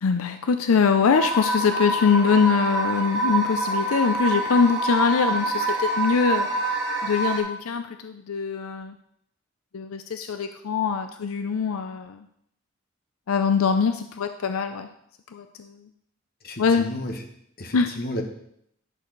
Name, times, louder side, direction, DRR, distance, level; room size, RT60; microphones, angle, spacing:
voice 1, 0.0-6.5 7.0-9.0 9.7-12.2 13.3-14.9 15.3-15.7 16.6-16.9 17.7-17.9, left 5 dB, 80° left, 8 dB, 0.5 m, -23 dB
sound 1, 1.1-7.4, right 2 dB, 15° right, 2.3 m, -26 dB
voice 2, 16.4-17.2 17.6-18.2, left 1 dB, 45° left, 4 dB, 1.1 m, -32 dB
11.0 x 6.3 x 3.9 m, 0.72 s
head